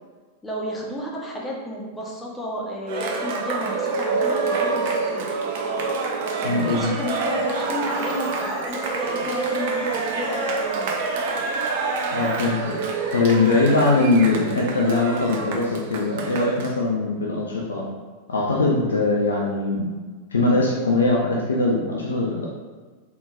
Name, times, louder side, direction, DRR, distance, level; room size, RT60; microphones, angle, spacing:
voice 1, 0.4-5.3 6.4-10.9, left 1 dB, 10° left, -3 dB, 0.9 m, -32 dB
Cheering, 2.9-16.7, right 4 dB, 50° right, 0.5 m, -27 dB
voice 2, 6.4-6.9 12.1-12.8 13.1-17.8 18.3-20.0 20.3-22.5, left 3 dB, 70° left, -2 dB, 0.5 m, -21 dB
sound 1, 7.4-12.6, left 1 dB, 50° left, 1.3 m, -43 dB
4.0 x 3.7 x 2.3 m, 1.4 s
figure-of-eight pair, 90°, 0 cm